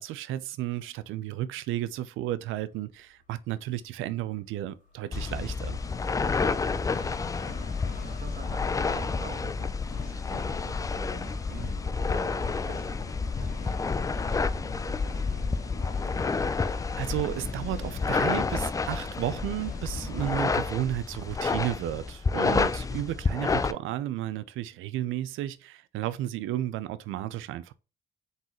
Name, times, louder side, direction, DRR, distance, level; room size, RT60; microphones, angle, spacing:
voice 1, 0.0-5.8 16.2-16.7 16.9-27.7, right 13 dB, 90° right, 0.5 m, -33 dB
sound 1, 3.0-3.1 4.5-20.4, left 3 dB, 40° left, 1.7 m, -44 dB
sound 2, 5.1-23.7, left 4 dB, 15° left, 0.3 m, -29 dB
voice 2, 6.7-15.5 22.9-23.6, right 5 dB, 50° right, 1.2 m, -48 dB
4.0 x 3.9 x 2.9 m
cardioid pair, 90°, 20 cm